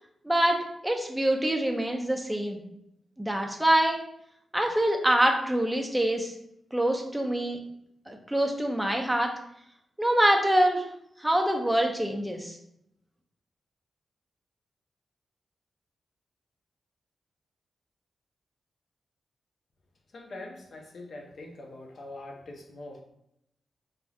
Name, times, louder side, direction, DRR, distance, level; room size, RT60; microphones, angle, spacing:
voice 1, 0.2-2.6 3.2-4.0 4.5-6.3 6.7-7.6 8.1-9.3 10.0-10.8 11.2-12.6, right 1 dB, 5° right, 2 dB, 0.5 m, -25 dB
voice 2, 20.1-23.0, left 2 dB, 60° left, 1 dB, 0.6 m, -43 dB
3.2 x 2.6 x 2.4 m, 0.76 s
cardioid pair, 95°, 0 cm